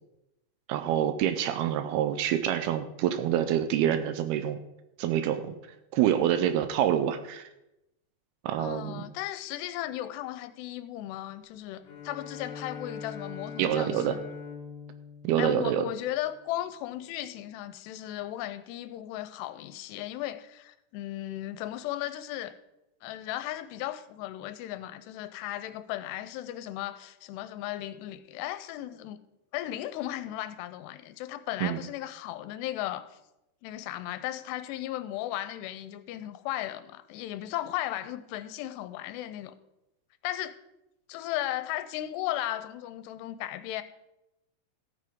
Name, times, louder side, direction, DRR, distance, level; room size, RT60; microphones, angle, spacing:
voice 1, 0.7-4.6 5.0-5.6 5.9-7.5 8.4-9.0 13.6-14.2 15.2-15.9 31.6-31.8, right 10 dB, 80° right, 2.4 m, -26 dB
voice 2, 8.6-14.3 15.4-22.6 23.0-29.2 29.5-33.2 33.6-39.6 40.2-40.6 41.1-43.8, left 14 dB, 85° left, 2.7 m, -36 dB
Bowed string instrument, 11.8-16.5, left 5 dB, 55° left, 1.9 m, -43 dB
15.0 x 9.1 x 3.6 m
omnidirectional pair, 4.8 m